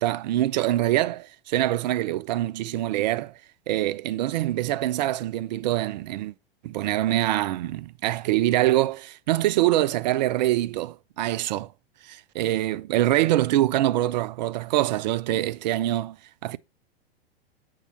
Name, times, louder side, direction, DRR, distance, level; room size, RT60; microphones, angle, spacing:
voice 1, 0.0-3.3 3.7-6.3 6.6-11.7 12.0-16.2 16.4-16.6, right 14 dB, 45° right, 0.4 m, -24 dB
8.2 x 3.8 x 5.4 m
figure-of-eight pair, 95°, 31 cm